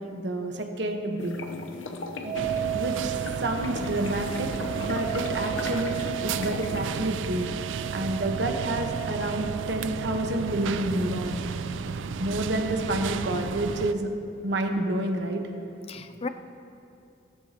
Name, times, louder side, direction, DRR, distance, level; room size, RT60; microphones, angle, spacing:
voice 1, 0.1-1.5 2.2-2.4 2.7-3.1 3.4-5.9 6.2-7.5 7.9-11.4 12.2-14.1 14.4-15.4, right 1 dB, 65° right, 3 dB, 1.2 m, -29 dB
sound 1, 1.2-6.9, left 3 dB, 90° left, 0.9 m, -38 dB
sound 2, 2.2-10.9, right 16 dB, 50° right, 2.9 m, -35 dB
sound 3, 2.3-13.9, right 5 dB, 85° right, 0.4 m, -33 dB
voice 2, 15.9-16.3, left 3 dB, 30° left, 10 dB, 0.4 m, -37 dB
17.5 x 13.5 x 2.9 m, 2.6 s
head